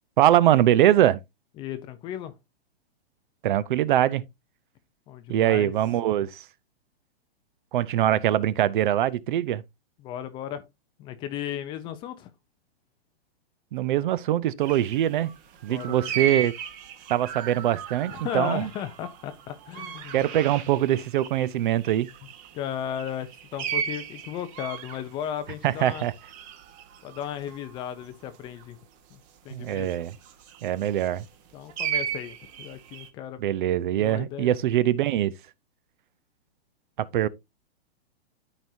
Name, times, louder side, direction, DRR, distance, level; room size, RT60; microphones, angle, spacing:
voice 1, 0.2-1.2 3.4-4.2 5.3-6.4 7.7-9.6 13.7-15.3 15.6-16.5 17.1-18.7 20.1-22.1 25.6-26.1 29.5-30.1 30.6-31.2 33.4-35.3 37.0-37.3, right 12 dB, 50° right, 0.7 m, -23 dB
voice 2, 1.6-2.3 5.1-5.7 10.0-10.6 11.0-12.3 15.7-16.1 18.1-20.2 22.5-26.1 27.0-28.8 29.1-29.2 29.4-29.9 31.5-33.4 34.0-34.6, left 10 dB, 15° left, 0.5 m, -35 dB
sound 1, 14.6-21.5 21.8-28.6 29.7-31.3 31.7-33.1, right 9 dB, 25° right, 1.0 m, -36 dB
13.0 x 4.6 x 2.6 m
hypercardioid pair, 150°, 32 cm